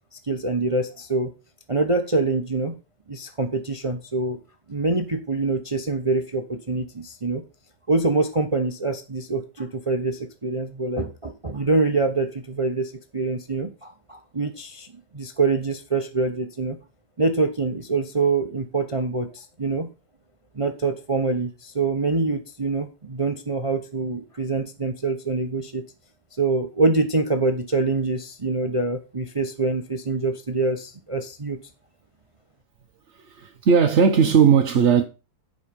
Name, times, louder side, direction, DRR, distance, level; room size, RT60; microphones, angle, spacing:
voice 1, 0.3-1.3 1.7-2.8 3.1-4.4 4.7-7.4 7.9-14.9 15.1-16.8 17.2-19.9 20.5-25.8 26.4-31.6, right 3 dB, 35° right, 0.5 m, -25 dB
voice 2, 33.1-35.0, right 7 dB, 50° right, 0.9 m, -17 dB
9.8 x 5.4 x 5.2 m
omnidirectional pair, 1.8 m